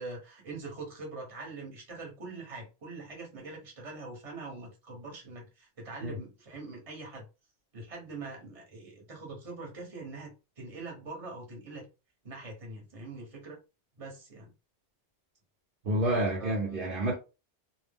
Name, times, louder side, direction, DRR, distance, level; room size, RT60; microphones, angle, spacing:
voice 1, 0.0-7.2 7.7-11.9 12.2-13.6 14.0-14.5 16.4-16.6, right 3 dB, 35° right, 1.0 m, -43 dB
voice 2, 15.8-17.1, right 1 dB, 55° right, 0.8 m, -29 dB
2.2 x 2.0 x 3.4 m
omnidirectional pair, 1.2 m